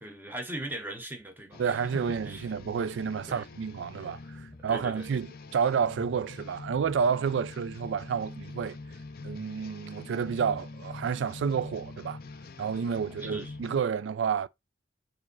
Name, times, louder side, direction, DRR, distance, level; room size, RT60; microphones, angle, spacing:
voice 1, 0.0-1.9 2.3-2.5 3.3-3.5 4.7-5.1 13.2-13.5, right 1 dB, 10° right, 1.0 m, -39 dB
sound 1, 1.5-13.8, left 3 dB, 50° left, 0.5 m, -45 dB
voice 2, 1.6-8.8 9.2-12.2 12.6-14.5, right 6 dB, 80° right, 0.4 m, -30 dB
4.8 x 2.7 x 4.0 m
head